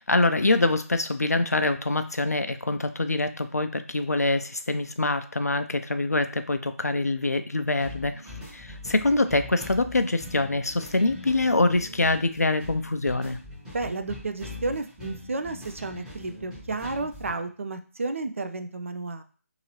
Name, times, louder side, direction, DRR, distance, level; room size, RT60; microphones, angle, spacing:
voice 1, 0.0-8.2 8.5-13.4, left 2 dB, 85° left, 11 dB, 0.4 m, -25 dB
sound 1, 7.8-17.4, left 2 dB, 5° right, 0.9 m, -42 dB
voice 2, 13.7-19.2, right 3 dB, 55° right, 8 dB, 0.4 m, -32 dB
2.8 x 2.7 x 2.9 m, 0.40 s
figure-of-eight pair, 150°, 8 cm